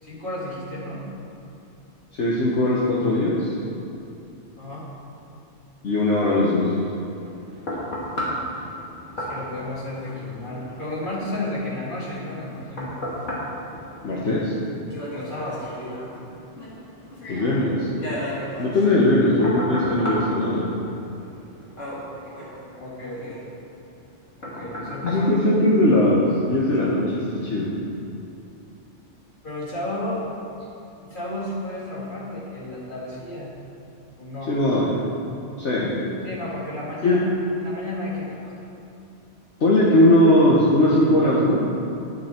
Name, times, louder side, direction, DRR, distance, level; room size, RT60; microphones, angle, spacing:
voice 1, 0.0-1.0 4.6-4.9 9.2-13.0 15.1-16.0 22.8-23.4 24.4-25.3 29.4-30.3 31.0-33.5 34.2-34.5 35.9-37.2 37.6-38.6, left 1 dB, 45° left, -6 dB, 2.6 m, -32 dB
voice 2, 2.2-3.5 5.8-6.8 14.0-14.5 17.3-17.9 18.6-20.7 25.0-27.8 34.5-34.8 35.6-35.9 37.0-37.2 39.6-41.8, left 1 dB, 70° left, -6 dB, 1.5 m, -19 dB
sound 1, 7.0-26.3 26.8-26.9, equal, 85° left, 2.7 m, -35 dB
11.0 x 10.0 x 4.5 m, 2.8 s
omnidirectional pair, 1.2 m